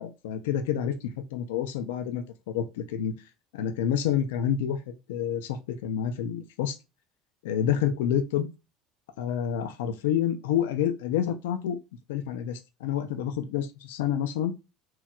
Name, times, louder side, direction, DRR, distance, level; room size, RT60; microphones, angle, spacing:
voice 1, 0.0-3.1 3.5-6.8 7.4-8.5 9.2-11.8 12.1-14.5, left 9 dB, 75° left, 0.6 m, -28 dB
4.6 x 2.9 x 2.4 m
hypercardioid pair, 70°, 0 cm